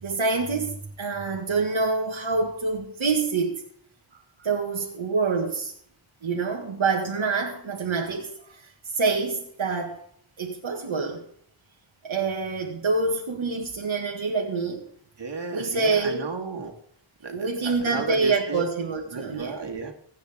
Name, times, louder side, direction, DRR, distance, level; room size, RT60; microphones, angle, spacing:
voice 1, 0.0-3.6 4.4-5.7 6.2-8.6 8.9-10.0 10.4-11.2 12.0-14.8 15.5-16.3 17.3-19.6, right 4 dB, 85° right, -1 dB, 2.1 m, -26 dB
voice 2, 15.2-16.7 17.2-18.6 19.1-19.9, right 4 dB, 65° right, 2 dB, 2.5 m, -33 dB
23.0 x 9.2 x 3.7 m, 0.63 s
wide cardioid pair, 100°, 46 cm